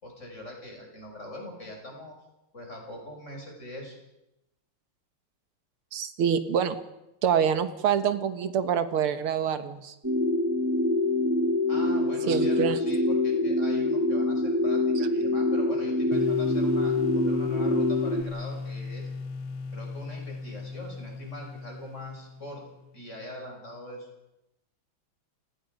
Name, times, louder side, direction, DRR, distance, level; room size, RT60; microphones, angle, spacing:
voice 1, 0.0-2.2 2.5-4.0 11.7-19.1 19.7-22.6 22.9-24.1, left 1 dB, 30° left, 1 dB, 6.3 m, -42 dB
voice 2, 5.9-6.8 7.2-9.9 12.3-12.8, right 8 dB, 80° right, 10 dB, 2.2 m, -26 dB
sound 1, 10.0-18.2, left 2 dB, 10° right, 1.1 m, -25 dB
sound 2, 16.1-22.9, left 4 dB, 70° left, 1.9 m, -36 dB
28.5 x 19.5 x 5.2 m, 0.89 s
omnidirectional pair, 2.4 m